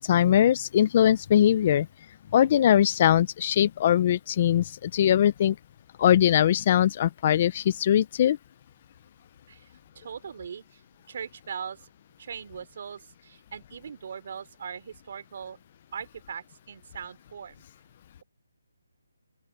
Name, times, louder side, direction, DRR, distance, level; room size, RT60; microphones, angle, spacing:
voice 1, 0.0-1.9 2.3-5.6 6.0-8.4, left 10 dB, 30° left, 0.4 m, -21 dB
voice 2, 10.0-10.8 11.1-11.9 12.2-15.6 15.9-17.6, right 7 dB, 40° right, 3.7 m, -40 dB
open air
hypercardioid pair, 170°, 0 cm